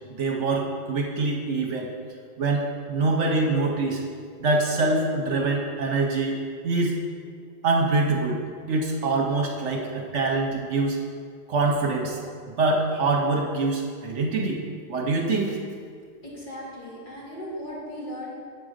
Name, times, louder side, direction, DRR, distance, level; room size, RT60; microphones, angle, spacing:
voice 1, 0.2-1.9 2.4-4.0 4.4-7.0 7.6-8.4 8.7-11.0 11.5-12.2 12.5-14.6 14.9-15.6, right 3 dB, 60° right, 0 dB, 1.1 m, -24 dB
voice 2, 16.2-18.3, equal, 35° left, -7 dB, 2.2 m, -37 dB
7.4 x 3.8 x 6.5 m, 2.1 s
omnidirectional pair, 1.4 m